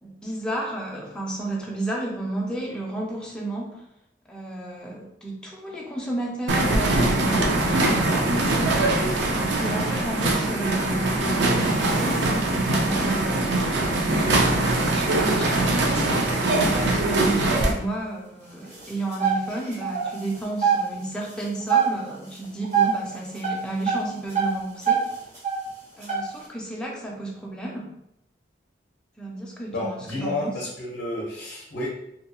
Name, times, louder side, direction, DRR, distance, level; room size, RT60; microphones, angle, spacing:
voice 1, 0.0-3.8 4.3-8.6 9.3-13.4 14.1-15.7 16.4-25.0 26.0-27.9 29.2-30.5, right 2 dB, 5° left, -3 dB, 0.4 m, -32 dB
sound 1, 6.5-17.7, right 2 dB, 70° right, 0.4 m, -22 dB
sound 2, 11.7-17.8 18.2-18.3 18.6-20.9 21.2-21.9 22.2-23.0 23.3-25.7 26.0-26.4, right 7 dB, 40° right, 0.9 m, -26 dB
voice 2, 29.7-31.9, left 2 dB, 55° left, -4 dB, 0.6 m, -30 dB
2.7 x 2.6 x 2.3 m, 0.79 s
head